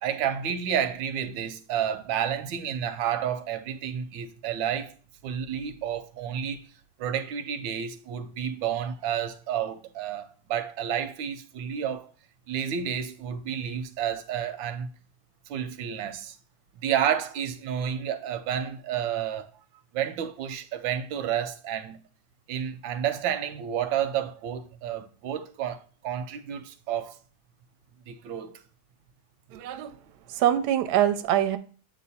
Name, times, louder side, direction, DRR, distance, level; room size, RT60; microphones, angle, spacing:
voice 1, 0.0-4.9 5.2-6.7 7.0-12.1 12.5-14.9 15.5-16.3 16.8-19.5 19.9-22.0 22.5-27.2 28.1-28.6, right 9 dB, 85° right, 1.3 m, -30 dB
voice 2, 29.5-30.0 30.3-31.6, right 11 dB, 70° right, 1.0 m, -24 dB
7.6 x 3.1 x 4.1 m
omnidirectional pair, 2.0 m